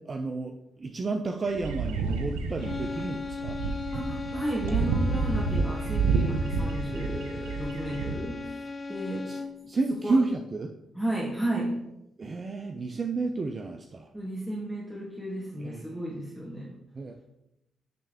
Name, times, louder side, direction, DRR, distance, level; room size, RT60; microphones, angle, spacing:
voice 1, 0.0-3.6 9.3-9.4 9.7-10.7 12.2-14.1 15.6-16.0 16.9-17.2, right 3 dB, 40° right, 5 dB, 0.5 m, -31 dB
sound 1, 1.5-8.1, right 4 dB, 90° right, 0.5 m, -29 dB
sound 2, 2.6-9.7, left 3 dB, 35° left, 0.4 m, -37 dB
voice 2, 3.9-8.5 8.9-9.3 10.0-10.2 10.9-11.8 14.1-16.7, right 1 dB, 10° right, -5 dB, 1.4 m, -33 dB
8.8 x 3.3 x 3.5 m, 0.86 s
supercardioid pair, 50°, 0 cm